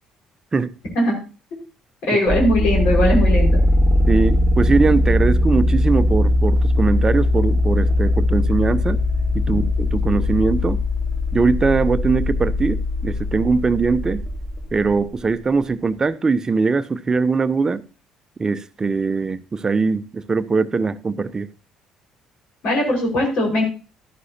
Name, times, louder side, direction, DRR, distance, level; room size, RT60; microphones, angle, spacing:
voice 1, 2.0-3.6 9.5-9.6 22.6-23.6, equal, 60° left, 5.1 m, -19 dB
sound 1, 2.3-14.9, left 1 dB, 40° left, 3.8 m, -19 dB
voice 2, 4.1-9.0 9.3-10.8 11.3-14.2 14.7-17.8 18.4-21.5, right 4 dB, 30° right, 0.7 m, -21 dB
13.0 x 11.0 x 2.8 m
hypercardioid pair, 50°, 2 cm